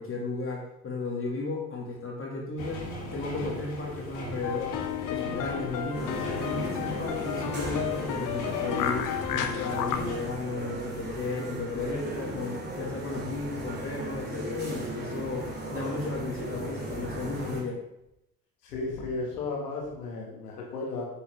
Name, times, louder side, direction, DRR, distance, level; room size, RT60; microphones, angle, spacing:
voice 1, 0.0-2.9 3.1-4.8 5.1-17.8, left 3 dB, 25° left, -2 dB, 2.5 m, -34 dB
sound 1, 2.6-10.2, left 1 dB, 60° left, 3.1 m, -39 dB
sound 2, 4.4-10.0, left 10 dB, 40° left, 0.9 m, -32 dB
sound 3, 5.9-17.6, right 1 dB, 20° right, 2.9 m, -37 dB
voice 2, 18.6-21.1, left 3 dB, 75° left, -1 dB, 2.4 m, -34 dB
9.8 x 7.0 x 3.6 m, 0.83 s
figure-of-eight pair, 60°, 47 cm